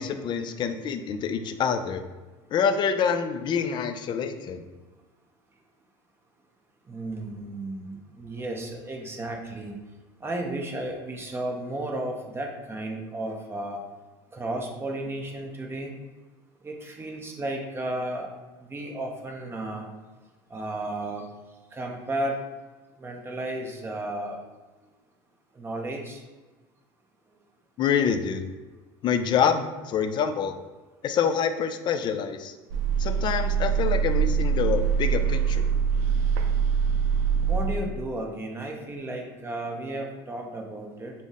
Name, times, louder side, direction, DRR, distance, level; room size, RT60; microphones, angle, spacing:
voice 1, 0.0-2.0 2.5-4.6 27.8-28.4 29.0-30.5 31.0-32.5 33.0-35.7, left 7 dB, 35° left, 8 dB, 0.3 m, -26 dB
voice 2, 6.9-9.7 10.2-13.8 14.3-15.9 16.6-18.3 18.7-19.9 20.5-21.2 21.7-22.4 23.0-24.4 25.6-26.2 37.3-41.1, right 1 dB, 20° right, 1 dB, 0.6 m, -33 dB
sound 1, 32.7-38.0, right 7 dB, 75° right, 0.4 m, -24 dB
3.8 x 2.0 x 3.6 m, 1.3 s
supercardioid pair, 105°, 13 cm